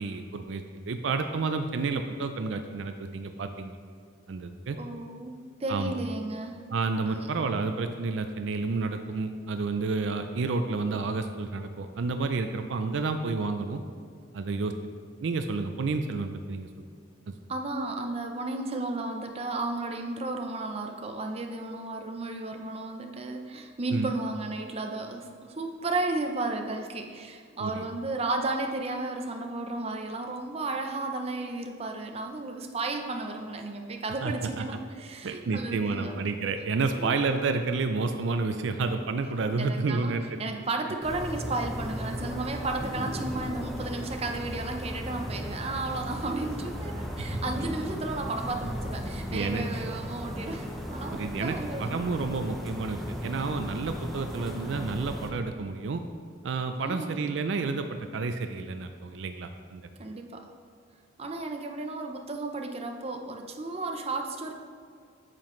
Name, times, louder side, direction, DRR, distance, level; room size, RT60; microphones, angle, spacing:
voice 1, 0.0-3.7 4.3-4.8 5.7-5.9 6.7-13.8 14.3-14.7 15.2-16.7 23.9-24.1 27.6-27.9 34.2-34.7 35.2-40.4 47.6-47.7 49.3-49.6 51.1-56.0 56.4-59.9, right 4 dB, 70° right, 7 dB, 0.4 m, -30 dB
voice 2, 4.8-6.6 7.1-7.3 17.5-36.2 37.0-37.2 39.6-40.1 40.4-52.0 56.8-57.1 60.0-60.4 61.2-64.5, right 2 dB, 30° right, 3 dB, 0.6 m, -33 dB
sound 1, 41.0-55.3, equal, ahead, 0.8 m, -36 dB
8.7 x 7.6 x 3.1 m, 2.2 s
head